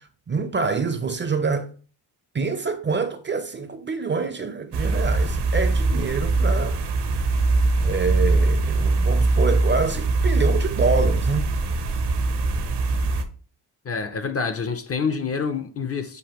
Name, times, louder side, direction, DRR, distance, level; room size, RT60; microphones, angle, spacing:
voice 1, 0.3-1.7 2.3-6.8 7.2-7.3 7.8-11.5, right 4 dB, 25° right, 0.5 m, -26 dB
sound 1, 4.7-13.2, right 3 dB, 70° right, 0.8 m, -22 dB
voice 2, 13.8-16.2, left 5 dB, 35° left, 0.5 m, -27 dB
6.6 x 2.5 x 2.9 m
cardioid pair, 95°, 43 cm